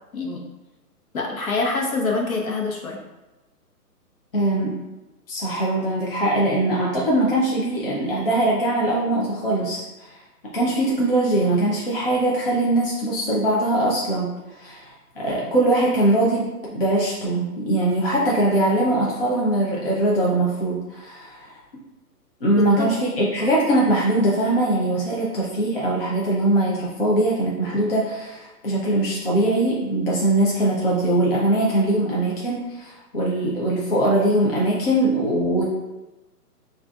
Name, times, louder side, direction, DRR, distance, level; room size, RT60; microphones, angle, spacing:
voice 1, 1.1-3.0 22.6-22.9, left 3 dB, 60° left, -1 dB, 1.1 m, -25 dB
voice 2, 4.3-4.8 5.3-10.2 10.5-21.6 22.4-35.6, right 1 dB, 35° left, -5 dB, 0.6 m, -21 dB
6.6 x 2.6 x 2.4 m, 1.0 s
hypercardioid pair, 170°, 47 cm